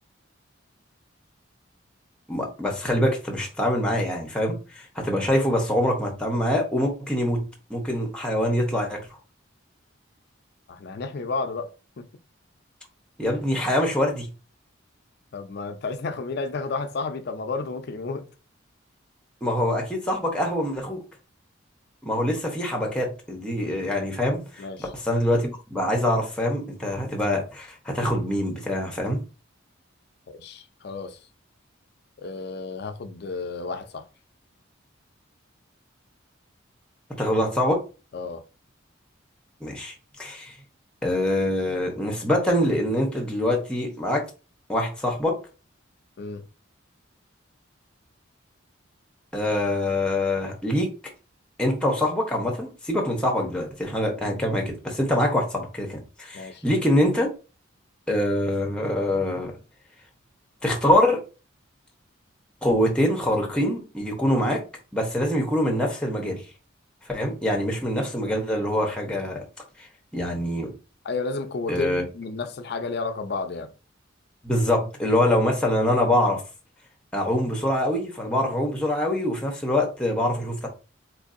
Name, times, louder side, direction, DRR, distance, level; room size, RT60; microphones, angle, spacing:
voice 1, 2.3-9.1 13.2-14.3 19.4-21.0 22.0-29.2 37.2-37.8 39.6-40.5 41.0-44.2 44.7-45.4 49.3-50.9 51.6-57.3 58.1-59.6 60.6-61.2 62.6-64.6 64.9-66.4 67.1-69.4 69.8-69.9 70.1-70.7 71.7-72.0 74.4-76.4 77.1-80.7, left 1 dB, 5° left, 0.8 m, -24 dB
voice 2, 10.7-11.7 12.0-12.1 15.3-18.3 24.6-24.9 30.3-31.2 32.2-34.1 38.1-38.4 46.2-46.5 56.3-56.6 71.0-73.7, left 4 dB, 55° left, 0.4 m, -32 dB
4.6 x 2.6 x 2.5 m
head